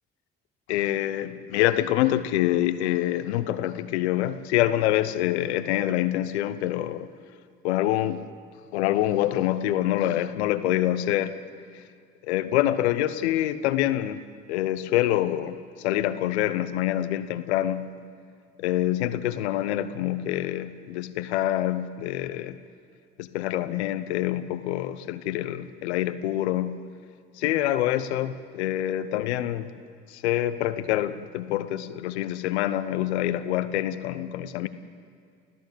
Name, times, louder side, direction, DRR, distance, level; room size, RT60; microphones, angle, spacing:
voice 1, 0.7-7.1 7.6-8.2 8.7-11.4 12.2-14.2 14.5-17.9 18.6-22.6 23.2-26.8 27.4-29.7 30.1-34.7, left 13 dB, 85° left, 13 dB, 0.9 m, -26 dB
29.0 x 15.0 x 8.0 m, 2.3 s
hypercardioid pair, 55°, 32 cm